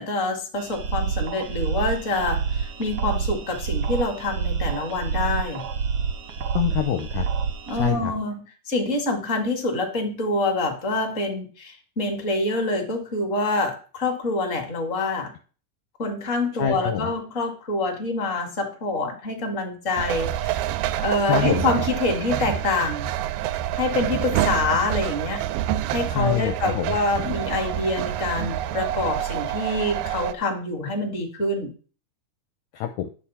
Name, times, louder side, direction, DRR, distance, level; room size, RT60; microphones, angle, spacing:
voice 1, 0.0-5.7 7.7-8.4 8.7-15.3 16.0-20.6 21.0-23.1 23.8-25.5 25.9-31.7, left 2 dB, 25° left, 4 dB, 1.9 m, -26 dB
sound 1, 0.6-7.9, right 6 dB, 65° right, 1.6 m, -28 dB
voice 2, 6.6-7.3 7.7-8.1 16.6-17.1 21.3-21.6 26.1-27.0 32.7-33.1, left 9 dB, 75° left, 6 dB, 1.9 m, -25 dB
sound 2, 20.0-30.3, right 12 dB, 85° right, 2.3 m, -27 dB
11.0 x 7.2 x 4.3 m, 0.38 s
omnidirectional pair, 3.9 m